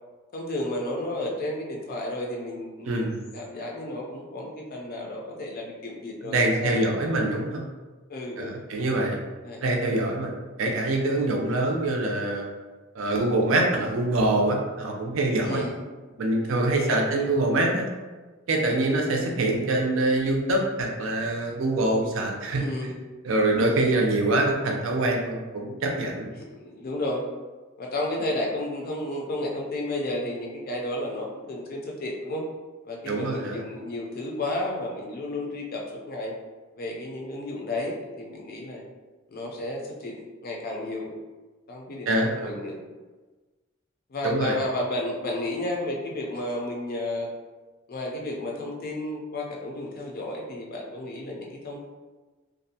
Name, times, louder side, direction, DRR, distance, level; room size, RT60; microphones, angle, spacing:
voice 1, 0.3-6.9 8.1-8.6 9.4-9.6 13.7-13.9 15.4-15.8 16.7-17.0 22.6-22.9 26.3-27.3 27.8-32.4 32.8-36.3 36.8-38.8 39.3-41.1 41.7-42.8 44.1-47.3 47.9-51.8, left 1 dB, 45° left, 0 dB, 0.4 m, -32 dB
voice 2, 2.9-3.2 6.2-7.6 8.4-9.2 9.6-12.5 12.9-15.6 16.2-17.9 18.5-22.6 23.2-26.3 33.1-33.6 42.1-42.6 44.2-44.6, right 2 dB, 70° right, 1 dB, 0.5 m, -25 dB
2.5 x 2.1 x 2.7 m, 1.3 s
head